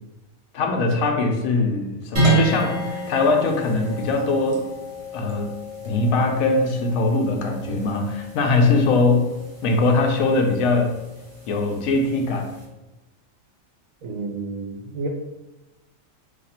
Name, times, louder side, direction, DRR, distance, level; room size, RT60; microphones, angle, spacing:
voice 1, 0.5-4.6 5.1-5.6 5.9-9.3 9.6-10.9 11.5-12.5, left 3 dB, 80° left, 2 dB, 1.0 m, -21 dB
sound 1, 2.2-12.7, right 1 dB, 55° right, 1.4 m, -29 dB
voice 2, 14.0-15.1, right 3 dB, 75° right, 2 dB, 1.0 m, -30 dB
2.8 x 2.4 x 4.1 m, 1.0 s
omnidirectional pair, 1.4 m